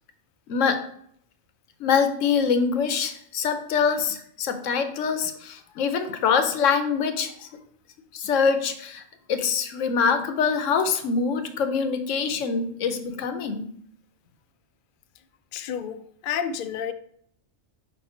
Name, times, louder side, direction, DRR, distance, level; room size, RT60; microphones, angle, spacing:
voice 1, 0.5-0.8 1.8-7.5 8.1-9.0 9.3-13.7, left 6 dB, 80° left, 1.1 m, -24 dB
voice 2, 15.5-16.0 16.2-16.9, left 8 dB, 60° left, 0.5 m, -29 dB
5.0 x 4.6 x 4.4 m
omnidirectional pair, 1.3 m